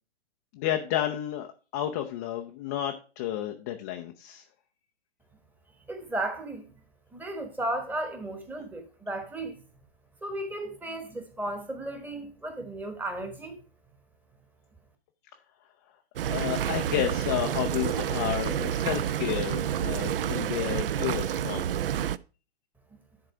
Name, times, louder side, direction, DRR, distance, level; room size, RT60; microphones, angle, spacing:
voice 1, 0.5-4.4 16.3-21.6, left 12 dB, 15° left, 0.3 m, -31 dB
voice 2, 5.9-6.6 7.1-9.6 10.2-13.6, right 1 dB, 5° right, 1.1 m, -34 dB
sound 1, 16.2-22.2, right 10 dB, 60° right, 0.4 m, -29 dB
10.0 x 4.0 x 4.6 m
hypercardioid pair, 125°, 32 cm